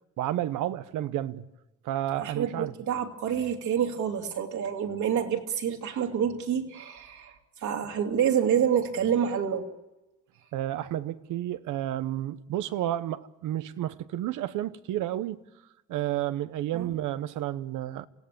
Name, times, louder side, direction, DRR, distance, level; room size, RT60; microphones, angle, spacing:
voice 1, 0.2-1.5 1.8-2.7 10.5-15.4 15.9-18.1, right 13 dB, 90° right, 1.0 m, -31 dB
voice 2, 2.2-7.3 7.6-9.7 16.7-16.9, right 8 dB, 70° right, 3.0 m, -27 dB
28.0 x 16.5 x 8.5 m
cardioid pair, 90°, 30 cm